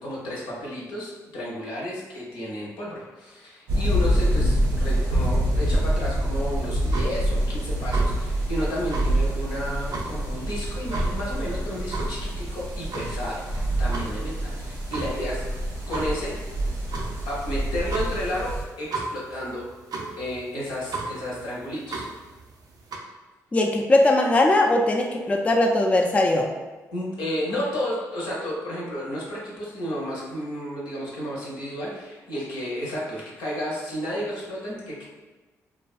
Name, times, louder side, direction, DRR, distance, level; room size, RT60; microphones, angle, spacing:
voice 1, 0.0-15.4 15.9-16.3 17.3-19.6 20.2-22.1 26.9-35.0, equal, 80° left, -5 dB, 0.7 m, -32 dB
sound 1, 3.7-18.6, right 1 dB, 85° right, 0.7 m, -26 dB
sound 2, 6.6-23.0, right 3 dB, 60° right, 0.4 m, -37 dB
voice 2, 23.5-26.5, left 2 dB, 20° left, 2 dB, 0.3 m, -20 dB
2.4 x 2.2 x 2.4 m, 1.2 s
supercardioid pair, 50°, 7 cm